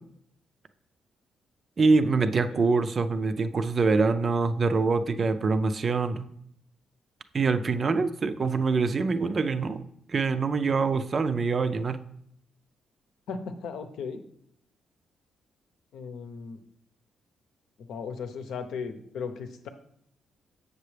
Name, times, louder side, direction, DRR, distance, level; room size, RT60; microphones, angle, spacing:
voice 1, 1.8-6.3 7.3-9.8 10.1-12.0, right 4 dB, 35° right, 11 dB, 0.4 m, -25 dB
voice 2, 13.3-14.2 15.9-16.6 17.8-19.7, left 5 dB, 80° left, 7 dB, 0.8 m, -37 dB
7.3 x 6.7 x 3.3 m, 0.70 s
cardioid pair, 125°, 0 cm